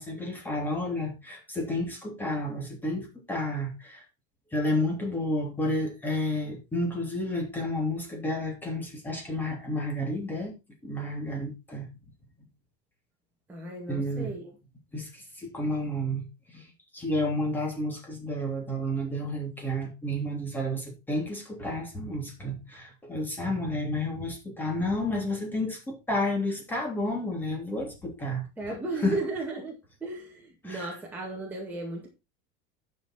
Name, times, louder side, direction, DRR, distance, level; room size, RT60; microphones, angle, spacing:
voice 1, 0.0-4.0 4.5-10.5 10.8-11.9 13.9-14.3 14.9-16.2 16.5-16.6 16.9-29.2 30.6-31.0, left 1 dB, 10° left, 3.1 m, -31 dB
voice 2, 13.5-14.5 28.6-32.1, right 2 dB, 10° right, 2.1 m, -35 dB
12.0 x 5.8 x 4.4 m
cardioid pair, 170°, 21 cm